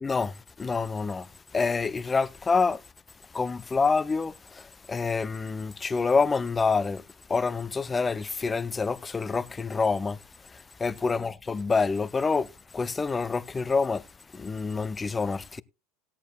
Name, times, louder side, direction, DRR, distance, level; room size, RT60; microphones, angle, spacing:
voice 1, 0.0-1.3 1.5-2.8 3.3-7.0 7.3-10.2 10.5-12.5 12.7-14.0 14.3-15.6, left 4 dB, 15° left, 0.6 m, -27 dB
16.5 x 13.0 x 2.2 m
figure-of-eight pair, 75°, 0 cm